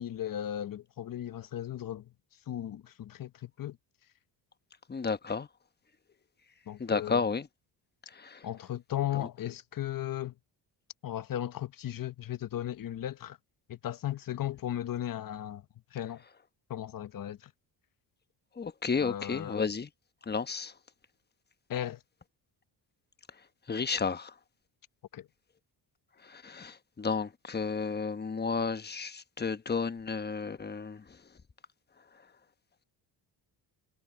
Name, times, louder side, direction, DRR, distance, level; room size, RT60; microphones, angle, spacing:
voice 1, 0.0-2.1 2.5-3.8 6.7-7.2 8.4-10.3 11.0-13.4 13.7-15.6 15.9-16.2 16.7-17.5 19.0-19.6 21.7-22.0 25.1-25.3, left 11 dB, 45° left, 0.9 m, -36 dB
voice 2, 4.9-5.5 6.8-7.5 8.1-8.5 9.2-9.3 18.6-19.9 20.3-20.7 23.7-24.3 26.2-31.2, left 5 dB, 20° left, 1.1 m, -32 dB
cardioid pair, 105°, 46 cm